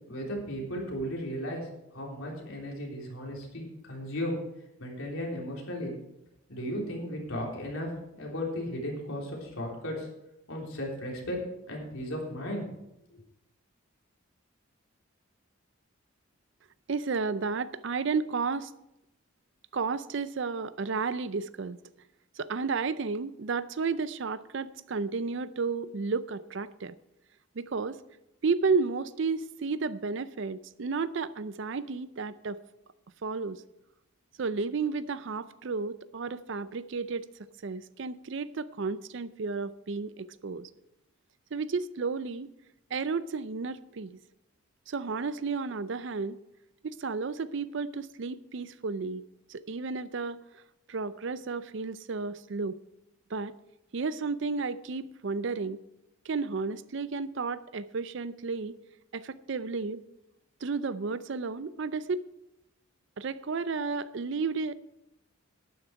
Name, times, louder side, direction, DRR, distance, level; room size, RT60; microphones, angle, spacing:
voice 1, 0.1-1.6 1.9-4.4 4.8-5.9 6.5-7.9 8.1-10.1 10.5-11.4 11.7-12.6 13.1-13.2, equal, 75° left, -2 dB, 3.5 m, -35 dB
voice 2, 16.9-18.7 19.7-21.8 22.4-27.0 27.6-28.0 28.4-32.6 33.2-33.6 34.4-37.3 37.6-40.7 41.5-42.5 42.9-44.2 44.9-46.4 46.8-49.2 49.5-50.4 50.9-52.8 53.3-53.5 53.9-55.8 56.3-58.7 59.1-60.0 60.6-62.2 63.2-64.8, right 4 dB, 55° right, 15 dB, 0.5 m, -32 dB
12.0 x 9.4 x 4.6 m, 0.88 s
head